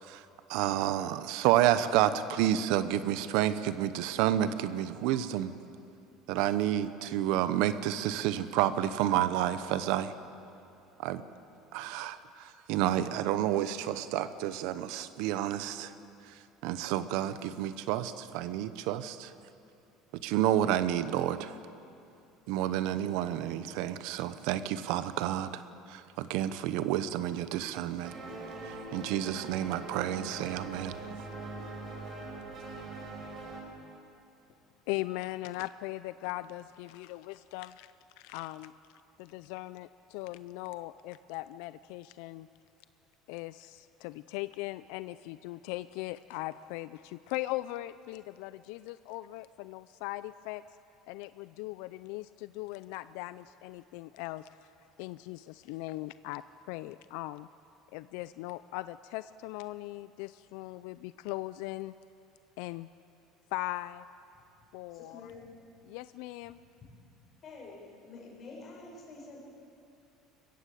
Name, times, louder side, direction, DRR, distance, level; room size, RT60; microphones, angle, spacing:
voice 1, 0.0-5.5 6.3-10.1 11.0-11.2 11.7-15.9 16.2-19.3 20.1-21.6 22.5-25.6 25.9-28.1 28.6-31.0, right 12 dB, 75° right, 13 dB, 0.9 m, -30 dB
sound 1, 28.0-33.6, right 2 dB, 40° right, 4.7 m, -42 dB
voice 2, 34.9-38.7 39.2-42.5 43.3-50.6 51.1-54.7 55.0-57.5 57.9-61.9 62.6-62.9 63.5-64.1 64.7-65.3 65.9-66.6, left 18 dB, 80° left, 15 dB, 0.4 m, -39 dB
voice 3, 64.9-65.5 67.4-69.5, left 3 dB, 40° left, -1 dB, 6.1 m, -48 dB
21.5 x 15.0 x 8.4 m, 2.6 s
supercardioid pair, 120°, 0 cm